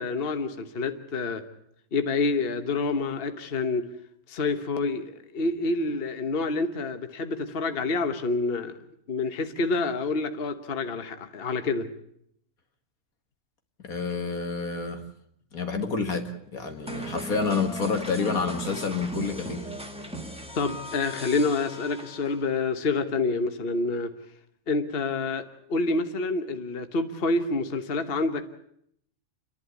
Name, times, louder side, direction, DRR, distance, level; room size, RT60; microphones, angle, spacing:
voice 1, 0.0-1.4 1.9-3.9 4.3-8.7 9.1-11.9 20.5-24.1 24.7-25.4 25.7-28.6, left 3 dB, 45° left, 8 dB, 1.4 m, -27 dB
voice 2, 13.8-15.0 15.5-19.7, left 4 dB, 80° left, 5 dB, 2.5 m, -29 dB
sound 1, 16.9-22.5, right 1 dB, 5° right, 2.0 m, -38 dB
30.0 x 11.5 x 8.5 m, 0.71 s
omnidirectional pair, 1.5 m